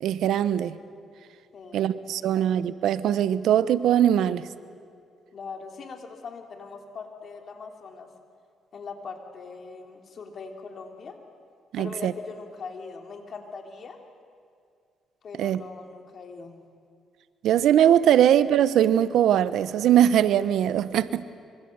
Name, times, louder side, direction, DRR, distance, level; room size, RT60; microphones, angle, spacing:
voice 1, 0.0-0.8 1.7-4.4 11.7-12.1 15.4-15.6 17.4-21.2, right 10 dB, 80° right, 15 dB, 0.9 m, -21 dB
voice 2, 1.5-1.9 2.2-2.3 5.3-8.1 8.7-11.2 11.8-14.0 15.2-16.6, left 4 dB, 55° left, 4 dB, 3.4 m, -41 dB
25.0 x 24.5 x 8.0 m, 2.3 s
cardioid pair, 90°, 0 cm